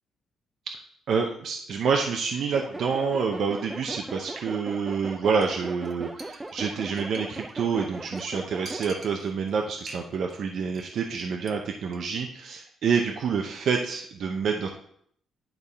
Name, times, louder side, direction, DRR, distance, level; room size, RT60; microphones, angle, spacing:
voice 1, 1.1-14.7, right 5 dB, 65° right, 2 dB, 0.7 m, -27 dB
sound 1, 2.5-8.9, right 2 dB, 15° right, 0.5 m, -39 dB
Chink clink, 5.4-5.6 5.8-5.9 6.2-7.5 7.8-7.9 8.2-8.3 8.7-9.5 9.8-10.4 10.6-10.9 11.2-11.5 11.8-12.0, right 3 dB, 40° right, 1.0 m, -45 dB
10.5 x 3.5 x 4.1 m, 0.65 s
cardioid pair, 90°, 0 cm